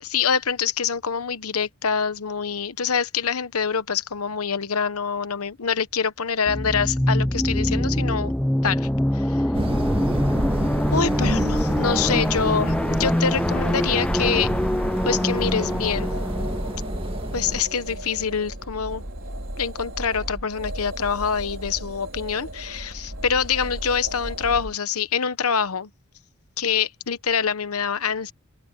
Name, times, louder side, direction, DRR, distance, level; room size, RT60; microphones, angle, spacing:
voice 1, 0.0-8.3 8.6-9.4 10.9-14.5 15.0-16.1 17.3-19.0 19.6-25.9 26.6-28.3, left 6 dB, 90° left, 1.1 m, -25 dB
sound 1, 6.5-18.0, left 1 dB, 5° left, 0.4 m, -25 dB
sound 2, 9.5-17.6, right 1 dB, 25° right, 1.8 m, -28 dB
sound 3, 15.6-24.8, right 1 dB, 65° right, 4.8 m, -35 dB
open air
head